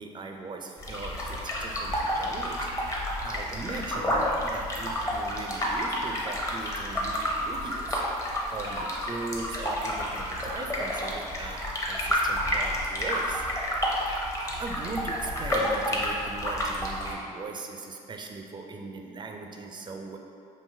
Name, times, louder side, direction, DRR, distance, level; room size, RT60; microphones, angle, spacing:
voice 1, 0.0-8.0 8.3-13.4 13.8-13.9 14.6-20.2, right 3 dB, 25° right, 3 dB, 0.4 m, -39 dB
sound 1, 0.8-17.1, equal, 20° left, 0.8 m, -30 dB
3.8 x 2.7 x 2.6 m, 2.5 s
hypercardioid pair, 55°, 18 cm